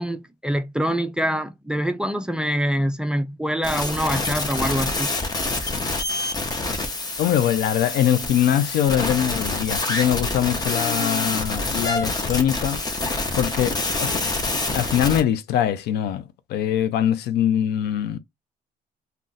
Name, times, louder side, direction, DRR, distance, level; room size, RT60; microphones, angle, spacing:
voice 1, 0.0-5.2, equal, 5° right, 0.3 m, -25 dB
sound 1, 3.6-15.2, left 2 dB, 25° left, 0.7 m, -26 dB
voice 2, 7.2-12.8 13.4-14.2 14.7-18.2, left 10 dB, 75° left, 0.5 m, -22 dB
2.5 x 2.3 x 3.9 m
cardioid pair, 110°, 17 cm